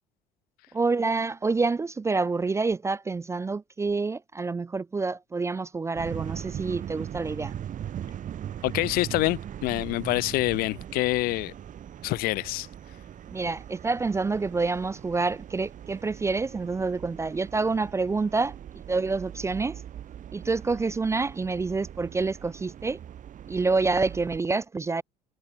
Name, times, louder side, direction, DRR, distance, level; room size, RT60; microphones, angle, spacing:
voice 1, 0.7-7.5 13.3-18.5 18.9-19.8 20.3-23.0 23.5-25.0, right 3 dB, 15° right, 0.5 m, -27 dB
sound 1, 5.9-24.4, right 10 dB, 40° right, 3.3 m, -40 dB
voice 2, 8.6-11.5 12.0-12.7, left 20 dB, 50° left, 0.6 m, -26 dB
figure-of-eight pair, 60°, 19 cm